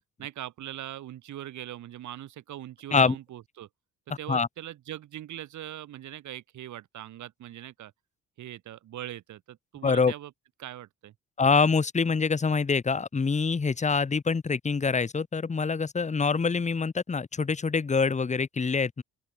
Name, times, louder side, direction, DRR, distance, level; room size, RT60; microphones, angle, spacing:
voice 1, 0.2-3.7 4.2-7.9 8.4-10.3 10.6-11.1, right 12 dB, 70° right, 2.2 m, -41 dB
voice 2, 9.8-10.1 11.4-19.0, left 5 dB, 25° left, 1.2 m, -25 dB
open air
cardioid pair, 90°, 30 cm